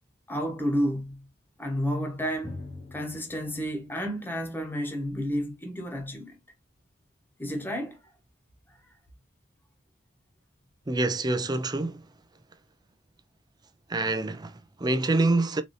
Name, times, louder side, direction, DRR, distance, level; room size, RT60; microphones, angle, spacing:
voice 1, 0.3-1.3 1.6-2.6 2.9-6.3 7.4-8.0, equal, 10° left, 1.0 m, -31 dB
Drum, 2.4-6.0, left 2 dB, 35° left, 1.0 m, -46 dB
voice 2, 10.9-12.0 13.9-15.6, right 2 dB, 20° right, 0.5 m, -26 dB
4.1 x 2.7 x 3.1 m
head